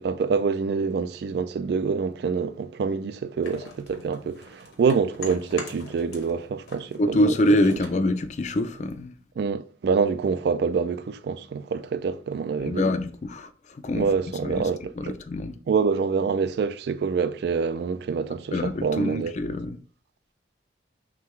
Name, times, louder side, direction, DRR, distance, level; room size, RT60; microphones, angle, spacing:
voice 1, 0.0-7.3 9.4-12.8 13.9-15.2 15.7-19.3, right 5 dB, 60° right, 0.3 m, -26 dB
sound 1, 3.4-6.4 6.6-9.0, left 3 dB, 65° left, 0.9 m, -43 dB
voice 2, 7.0-9.2 12.6-14.1 14.4-14.6 15.0-15.5 18.5-19.8, left 1 dB, 40° left, 0.4 m, -25 dB
3.7 x 3.3 x 3.1 m
head